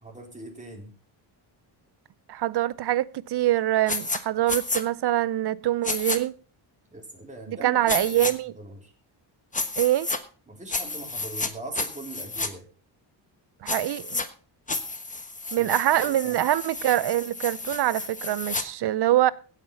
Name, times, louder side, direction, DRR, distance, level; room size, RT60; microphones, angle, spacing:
voice 1, 0.0-0.9 6.9-8.9 10.5-12.7 15.5-15.7 16.1-16.4, right 2 dB, 15° right, 3.7 m, -41 dB
voice 2, 2.3-6.3 7.5-8.5 9.8-10.1 13.6-14.2 15.5-19.3, right 13 dB, 60° right, 0.7 m, -24 dB
sound 1, 3.9-4.2 4.5-4.8 5.8-6.2 7.9-8.3 9.5-10.2 10.7-11.5 11.7-12.5 13.7-14.2 14.7-18.6, left 3 dB, 15° left, 1.2 m, -31 dB
16.5 x 5.9 x 5.5 m
cardioid pair, 100°, 46 cm